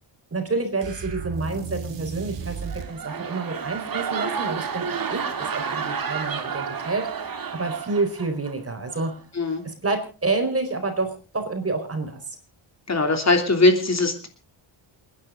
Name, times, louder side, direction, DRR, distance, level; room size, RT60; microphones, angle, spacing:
voice 1, 0.3-5.2 5.5-9.1 9.6-12.2, right 3 dB, 30° right, 6 dB, 4.6 m, -28 dB
sound 1, 0.8-3.0, right 6 dB, 60° right, 2.4 m, -34 dB
sound 2, 2.6-8.5 8.9-9.2, right 6 dB, 45° right, 2.0 m, -31 dB
voice 2, 12.9-14.3, left 2 dB, 30° left, 5 dB, 3.1 m, -20 dB
28.5 x 10.5 x 3.8 m, 0.35 s
wide cardioid pair, 125°, 49 cm